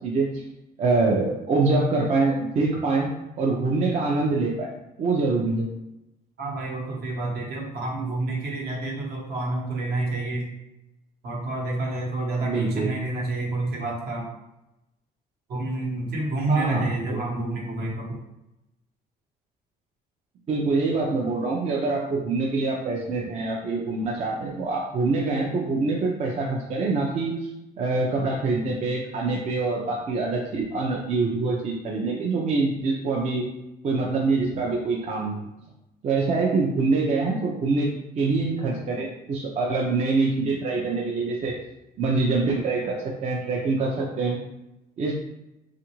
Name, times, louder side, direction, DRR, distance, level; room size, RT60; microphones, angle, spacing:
voice 1, 0.0-0.4 0.8-3.1 3.4-4.7 5.0-5.7 12.4-12.9 16.5-17.2 20.5-27.5 27.8-33.4 33.8-35.5 36.0-37.9 38.2-41.6 42.0-44.4 45.0-45.1, right 3 dB, 40° right, -2 dB, 0.5 m, -25 dB
voice 2, 6.4-10.5 11.2-14.3 15.5-18.2, right 2 dB, 65° right, -2 dB, 1.0 m, -28 dB
3.2 x 2.5 x 3.0 m, 0.92 s
cardioid pair, 110°, 17 cm